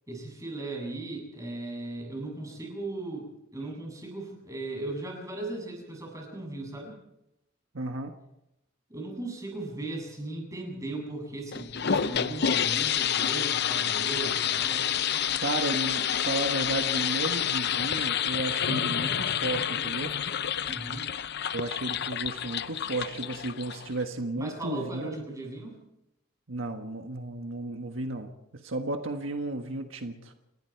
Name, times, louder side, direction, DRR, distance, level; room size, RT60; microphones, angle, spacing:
voice 1, 0.1-7.0 8.9-14.9 20.7-21.1 21.9-22.0 24.4-25.8, right 2 dB, 15° right, 1 dB, 7.9 m, -37 dB
voice 2, 7.7-8.1 15.4-20.1 21.5-25.1 26.5-28.3 28.6-30.3, right 2 dB, 75° right, 5 dB, 1.5 m, -33 dB
sound 1, 11.5-24.0, left 9 dB, 55° left, 0.7 m, -29 dB
30.0 x 19.5 x 4.7 m, 0.86 s
head